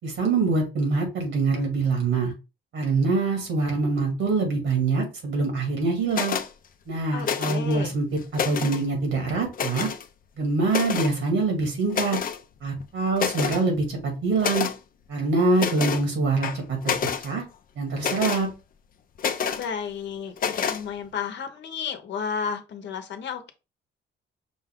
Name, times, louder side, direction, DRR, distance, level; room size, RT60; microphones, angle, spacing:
voice 1, 0.0-2.3 2.7-6.4 6.9-8.1 8.4-9.9 10.4-12.2 12.6-14.7 15.1-17.0 17.2-17.4 17.8-18.5, right 3 dB, 75° right, 3 dB, 2.0 m, -24 dB
sound 1, 6.1-6.5 7.2-7.7 8.2-8.8 9.5-10.0 10.7-11.1 11.9-12.4 12.8-12.9 13.2-13.6 14.4-14.8 15.6-16.0 16.4-17.3 18.0-18.4 19.2-19.7 20.4-20.8, left 7 dB, 45° left, 0.5 m, -28 dB
voice 2, 7.1-7.9 19.6-23.5, left 6 dB, 65° left, 8 dB, 0.9 m, -32 dB
5.3 x 2.3 x 3.6 m, 0.30 s
cardioid pair, 90°, 20 cm